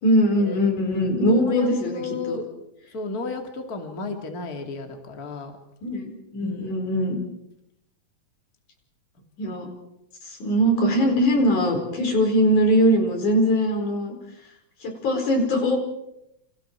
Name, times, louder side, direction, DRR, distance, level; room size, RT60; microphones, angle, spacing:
voice 1, 0.0-2.4 5.8-7.2 9.4-9.7 10.2-14.1 14.8-15.8, equal, 80° left, 3 dB, 6.2 m, -21 dB
voice 2, 1.4-1.7 1.9-2.5 2.9-5.5 6.4-6.7 9.2-9.5, left 3 dB, 30° left, 3 dB, 2.8 m, -33 dB
29.0 x 27.5 x 4.6 m, 0.82 s
omnidirectional pair, 3.5 m